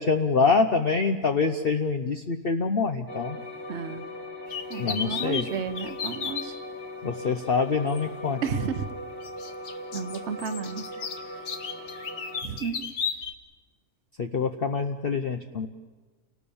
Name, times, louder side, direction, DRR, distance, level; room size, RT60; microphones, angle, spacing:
voice 1, 0.0-3.4 4.8-5.4 7.0-8.4 14.2-15.7, left 4 dB, 45° left, 6 dB, 0.9 m, -25 dB
sound 1, 3.1-12.4, left 1 dB, 15° right, 1.7 m, -39 dB
voice 2, 3.7-4.1 4.7-6.6 8.4-8.9 9.9-10.9 12.4-12.8, right 6 dB, 55° right, 10 dB, 1.2 m, -32 dB
sound 2, 4.5-6.5 7.9-8.0 9.2-13.3, left 6 dB, 70° left, 1.6 m, -34 dB
30.0 x 18.5 x 7.1 m, 1.4 s
omnidirectional pair, 1.5 m